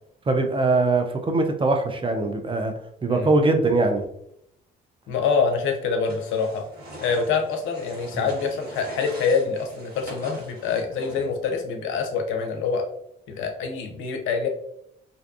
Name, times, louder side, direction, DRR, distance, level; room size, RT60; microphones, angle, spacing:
voice 1, 0.3-2.7 3.0-4.0 8.2-8.3, right 3 dB, 25° right, 5 dB, 0.5 m, -22 dB
voice 2, 5.1-6.6 7.0-12.8 13.3-14.5, left 5 dB, 70° left, 4 dB, 0.5 m, -25 dB
sound 1, 6.0-11.4, equal, 50° right, 1.4 m, -42 dB
2.5 x 2.2 x 2.5 m, 0.74 s
hypercardioid pair, 55°, 21 cm